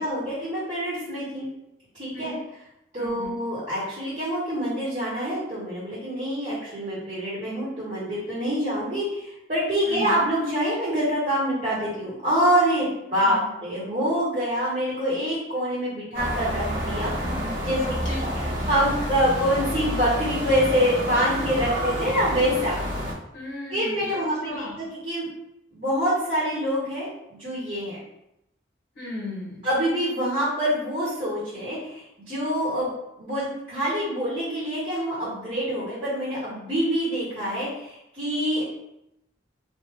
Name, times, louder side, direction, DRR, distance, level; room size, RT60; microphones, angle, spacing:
voice 1, 0.0-1.5 1.9-2.3 2.9-17.3 17.6-22.8 23.7-25.3 25.7-28.0 29.6-32.9 33.2-38.6, equal, 40° right, -9 dB, 1.0 m, -26 dB
voice 2, 3.0-3.3 9.8-10.2 13.0-13.5 17.1-18.2 18.5-18.6 23.3-24.7 28.9-29.6, left 2 dB, 80° left, -4 dB, 1.4 m, -37 dB
sound 1, 16.1-23.1, equal, 80° right, 1.2 m, -29 dB
3.2 x 2.1 x 3.2 m, 0.83 s
head